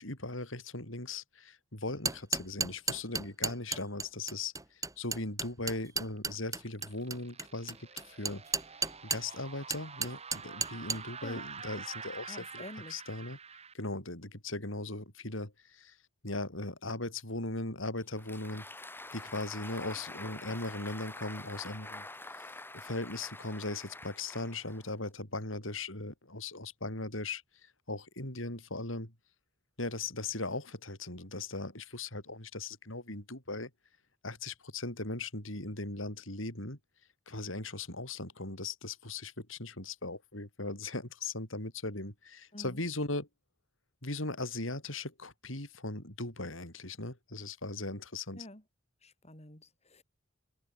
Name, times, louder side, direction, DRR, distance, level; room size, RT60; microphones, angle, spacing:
voice 1, 0.0-7.8 8.1-8.4 9.0-12.6 12.9-13.4 13.7-16.0 16.2-18.7 19.1-22.0 22.7-29.1 29.8-33.7 34.2-36.8 37.3-43.3 44.0-48.5, left 2 dB, 85° left, 7.2 m, -38 dB
sound 1, 1.9-9.3 9.7-11.0, right 4 dB, 15° right, 4.4 m, -34 dB
sound 2, 6.0-13.7, right 5 dB, 35° right, 5.1 m, -47 dB
voice 2, 12.3-13.0 42.5-42.8 48.4-48.6 49.0-50.0, left 1 dB, 35° left, 7.1 m, -48 dB
Applause, 18.0-25.1, left 2 dB, 10° left, 5.1 m, -46 dB
head